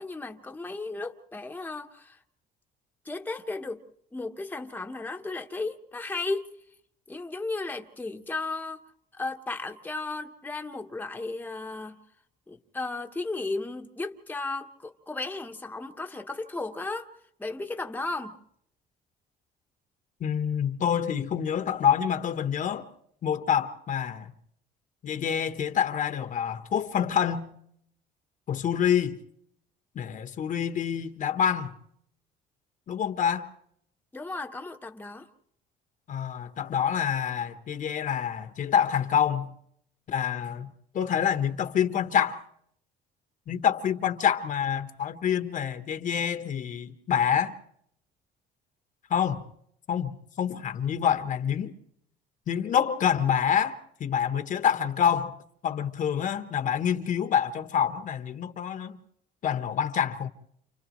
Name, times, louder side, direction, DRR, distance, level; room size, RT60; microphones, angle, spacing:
voice 1, 0.0-2.2 3.0-3.8 4.1-6.5 7.1-8.8 9.2-12.0 12.5-17.1 17.4-18.4 34.1-35.3, left 3 dB, 10° left, 1.1 m, -35 dB
voice 2, 20.2-22.9 23.2-24.3 25.0-27.6 28.5-29.2 29.9-31.7 32.9-33.5 36.1-39.5 40.1-40.7 40.9-42.4 43.5-47.5 49.1-49.4 49.9-51.7 52.5-55.4 55.6-59.0 59.4-60.3, left 8 dB, 50° left, 1.2 m, -27 dB
29.5 x 28.5 x 3.1 m
cardioid pair, 110°, 17 cm